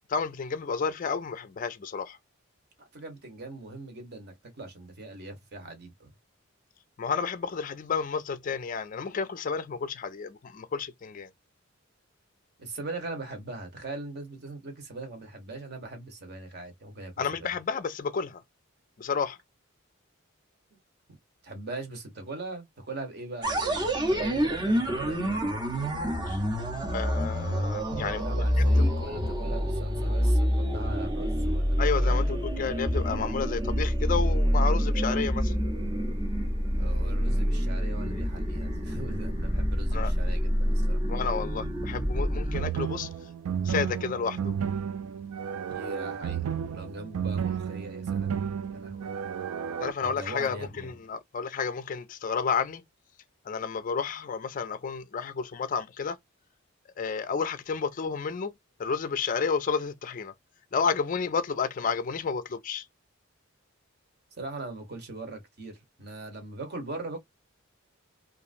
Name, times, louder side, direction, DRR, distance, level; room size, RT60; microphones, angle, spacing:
voice 1, 0.1-2.2 7.0-11.3 17.2-18.4 19.0-19.4 26.3-26.4 26.9-28.2 28.6-28.7 31.8-35.5 39.9-40.1 41.1-43.1 43.6-44.5 49.8-52.8 53.4-56.2 57.0-58.5 58.8-60.3 60.7-62.9, left 5 dB, 40° left, 0.4 m, -31 dB
voice 2, 2.8-6.1 12.6-17.1 17.4-17.5 21.4-25.4 28.1-32.3 36.6-41.0 45.7-48.3 48.7-49.1 50.0-50.9 64.4-67.2, right 2 dB, 50° right, 1.0 m, -40 dB
sound 1, 23.4-42.6, equal, 20° right, 0.6 m, -27 dB
sound 2, 42.5-49.9, right 7 dB, 85° right, 0.4 m, -32 dB
2.9 x 2.5 x 2.5 m
head